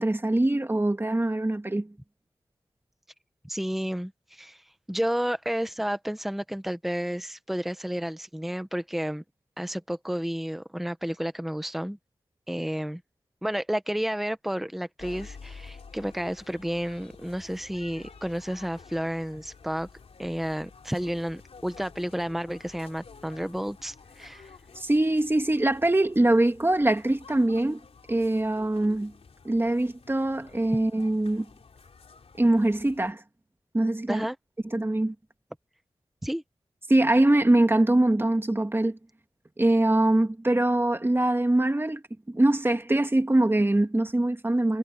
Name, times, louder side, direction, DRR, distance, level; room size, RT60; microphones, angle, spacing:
voice 1, 0.0-1.9 24.8-27.8 28.1-29.1 29.4-31.5 32.4-33.2 33.7-34.3 34.7-35.1 36.9-39.0 39.6-42.0 42.3-44.8, right 1 dB, 20° right, 2.1 m, -23 dB
voice 2, 3.4-9.2 9.6-12.0 12.5-13.0 13.4-19.9 20.2-24.5 34.1-34.4 36.2-36.4, equal, ahead, 1.0 m, -31 dB
sound 1, 15.0-33.1, left 5 dB, 85° left, 3.5 m, -50 dB
wide cardioid pair, 85°, 10 cm